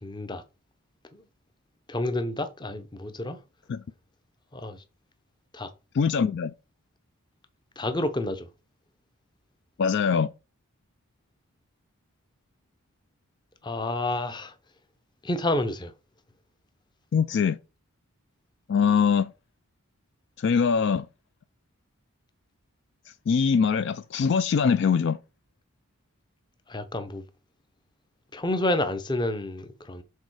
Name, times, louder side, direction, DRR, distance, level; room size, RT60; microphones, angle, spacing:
voice 1, 0.0-0.4 1.1-1.2 1.9-3.4 4.5-4.8 5.5-5.7 7.8-8.5 13.6-14.5 15.2-15.9 26.7-27.2 28.3-30.0, left 1 dB, 20° left, 0.7 m, -29 dB
voice 2, 5.9-6.5 9.8-10.3 17.1-17.6 18.7-19.3 20.4-21.1 23.3-25.2, left 6 dB, 55° left, 0.3 m, -22 dB
6.5 x 3.8 x 4.7 m
head